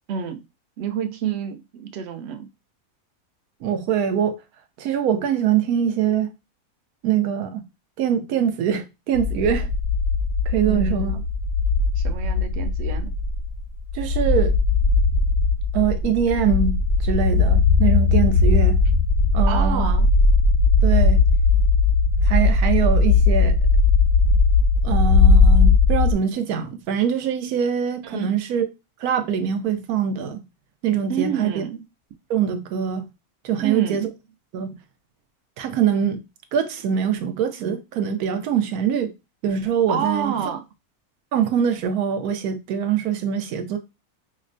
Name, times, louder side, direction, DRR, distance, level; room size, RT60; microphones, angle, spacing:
voice 1, 0.1-0.4 0.8-2.5 10.6-11.2 12.0-13.1 19.5-20.1 28.0-28.3 31.1-31.8 33.6-34.1 39.9-40.6, right 7 dB, 65° right, 0.6 m, -28 dB
voice 2, 3.6-4.4 4.8-6.3 7.0-7.6 8.0-9.7 10.5-11.2 13.9-14.6 15.7-18.8 19.3-19.9 20.8-21.2 22.2-23.6 24.8-28.7 29.0-30.4 30.8-31.6 32.3-33.0 33.4-34.1 34.5-34.8 35.6-36.2 36.5-39.1 39.4-40.4 41.3-43.8, right 8 dB, 85° right, 1.1 m, -23 dB
sound 1, 9.1-26.1, left 3 dB, 60° left, 0.8 m, -18 dB
5.1 x 2.1 x 2.5 m
omnidirectional pair, 1.5 m